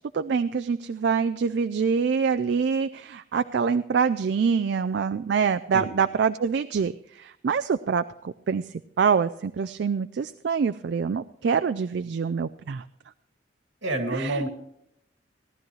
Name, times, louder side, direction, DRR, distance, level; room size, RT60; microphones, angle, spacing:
voice 1, 0.1-8.6 9.0-12.8 14.1-14.4, right 6 dB, 60° right, 10 dB, 0.3 m, -25 dB
voice 2, 13.8-14.5, right 1 dB, 80° right, 3 dB, 2.2 m, -28 dB
17.5 x 12.0 x 3.1 m, 0.76 s
head